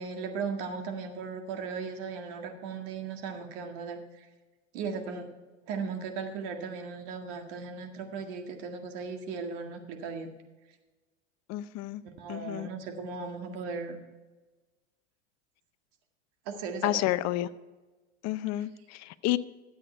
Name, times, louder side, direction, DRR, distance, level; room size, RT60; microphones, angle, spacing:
voice 1, 0.0-4.3 4.7-5.3 5.7-10.3 12.2-14.0 16.5-17.0, right 5 dB, 60° right, 4 dB, 1.9 m, -37 dB
voice 2, 11.5-12.0 12.3-12.7 16.8-17.5 18.2-19.4, left 15 dB, 45° left, 15 dB, 0.6 m, -30 dB
12.5 x 8.1 x 4.4 m, 1.2 s
hypercardioid pair, 100°, 37 cm